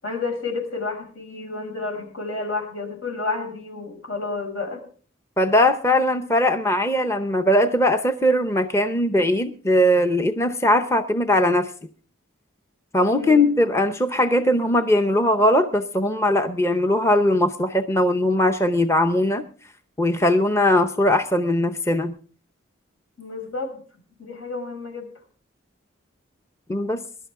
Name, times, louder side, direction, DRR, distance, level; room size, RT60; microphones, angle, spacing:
voice 1, 0.0-4.8 13.1-13.5 23.2-23.8 24.2-25.1, left 3 dB, 80° left, 2 dB, 6.0 m, -30 dB
voice 2, 5.4-11.7 12.9-19.5 20.0-22.2 26.7-27.0, left 1 dB, 15° left, 8 dB, 0.6 m, -20 dB
21.5 x 11.5 x 3.6 m, 0.42 s
head